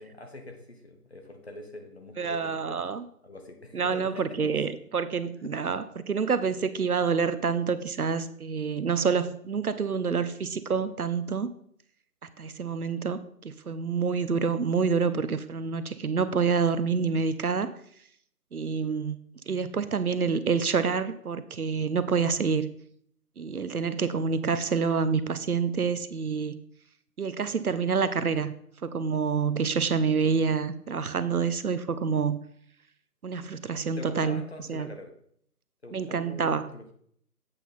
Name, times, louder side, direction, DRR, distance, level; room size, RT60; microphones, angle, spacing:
voice 1, 0.0-2.9 3.2-4.5 5.4-5.5 33.9-35.1 35.8-36.9, left 1 dB, 40° left, 4 dB, 1.2 m, -44 dB
voice 2, 2.2-3.0 3.7-11.5 12.4-17.7 18.5-19.2 19.5-22.7 23.4-26.6 27.2-28.5 28.8-32.4 33.2-34.4 34.7-34.9 35.9-36.7, right 5 dB, 65° right, 13 dB, 0.7 m, -27 dB
8.2 x 5.6 x 4.2 m, 0.66 s
figure-of-eight pair, 175°, 47 cm